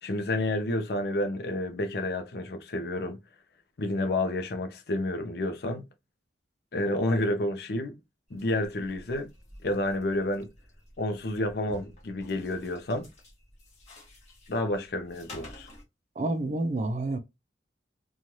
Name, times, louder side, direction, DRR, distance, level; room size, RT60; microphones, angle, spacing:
voice 1, 0.0-3.2 3.8-5.9 6.7-8.0 8.3-9.3 9.6-10.5 11.0-13.1 14.5-15.7, left 1 dB, 60° left, 0.6 m, -30 dB
sound 1, 8.3-15.8, left 1 dB, 40° left, 1.2 m, -51 dB
voice 2, 16.2-17.2, right 2 dB, 40° right, 0.4 m, -29 dB
3.1 x 2.3 x 2.7 m
head